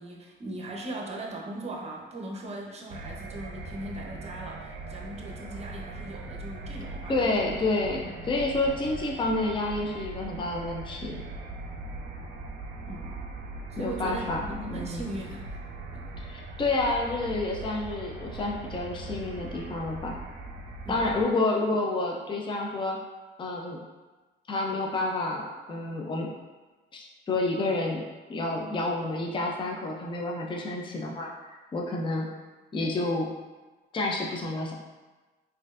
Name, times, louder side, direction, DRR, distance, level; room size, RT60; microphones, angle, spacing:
voice 1, 0.0-7.3 8.1-8.2 12.9-13.2 13.7-15.6 15.9-16.1 20.8-21.1, right 1 dB, 30° right, 0 dB, 0.7 m, -39 dB
sound 1, 2.9-21.2, right 2 dB, 85° right, 0.5 m, -40 dB
voice 2, 7.1-11.2 13.8-15.1 16.2-20.2 20.9-23.0 23.4-23.8 24.5-26.3 26.9-28.0 28.3-32.3 32.7-33.3 33.9-34.7, left 2 dB, 25° left, -1 dB, 0.5 m, -29 dB
4.2 x 2.6 x 2.4 m, 1.3 s
cardioid pair, 90°, 20 cm